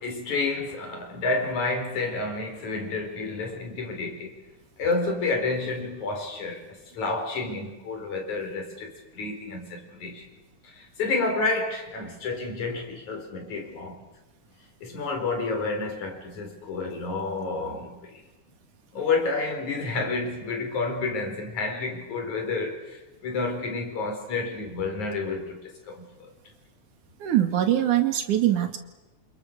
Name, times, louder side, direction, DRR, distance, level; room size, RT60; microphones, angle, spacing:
voice 1, 0.0-4.3 4.8-10.3 10.6-14.0 14.8-18.2 18.9-26.3, left 3 dB, 75° left, 3 dB, 5.9 m, -30 dB
voice 2, 27.2-28.8, right 12 dB, 90° right, 7 dB, 3.6 m, -22 dB
28.0 x 27.5 x 6.7 m, 1.1 s
omnidirectional pair, 3.4 m